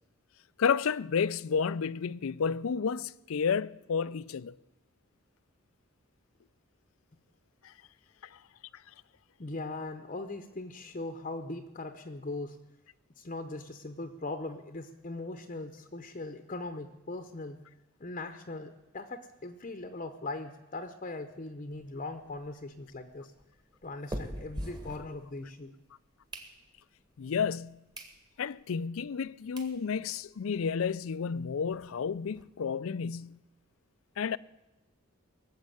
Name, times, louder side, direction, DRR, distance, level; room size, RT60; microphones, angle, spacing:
voice 1, 0.6-4.5 7.6-7.7 27.2-27.8 28.4-33.4 34.2-34.4, left 6 dB, 70° left, 0.4 m, -31 dB
voice 2, 9.4-12.6 13.2-17.6 18.0-23.3 23.8-25.7, left 2 dB, 35° left, 0.8 m, -40 dB
sound 1, 21.7-25.7 26.0-27.0 27.5-27.6 27.9-28.2 28.6-28.7 29.3-29.4 29.6-29.8 30.2-30.3 30.4-30.6 30.9-31.0 31.3-32.4, equal, 20° right, 1.7 m, -44 dB
19.0 x 7.4 x 9.1 m
head